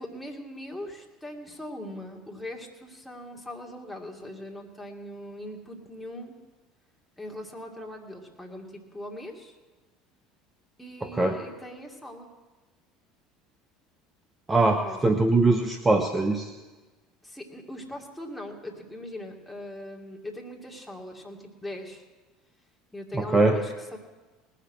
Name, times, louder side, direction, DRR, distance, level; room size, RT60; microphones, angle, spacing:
voice 1, 0.0-6.3 7.2-9.5 10.8-12.3 14.8-15.1 17.2-22.0 22.9-24.0, left 1 dB, 5° left, -1 dB, 2.7 m, -40 dB
voice 2, 11.0-11.4 14.5-16.5 23.1-23.6, right 2 dB, 20° right, 5 dB, 1.0 m, -22 dB
19.5 x 6.7 x 7.5 m, 1.2 s
hypercardioid pair, 75°, 0 cm